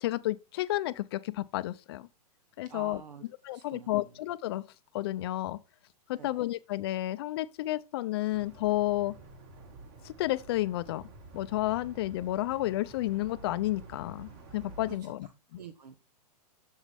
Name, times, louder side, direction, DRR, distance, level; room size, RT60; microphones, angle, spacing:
voice 1, 0.0-2.1 2.6-3.0 3.4-4.6 4.9-5.6 6.1-9.1 10.0-11.1 11.3-15.3, left 16 dB, 40° left, 0.5 m, -31 dB
voice 2, 2.6-4.2 6.2-6.5 14.9-15.1 15.5-16.0, right 7 dB, 80° right, 1.2 m, -48 dB
sound 1, 8.3-15.0, right 3 dB, 35° right, 2.0 m, -50 dB
8.2 x 7.2 x 3.5 m
hypercardioid pair, 160°, 21 cm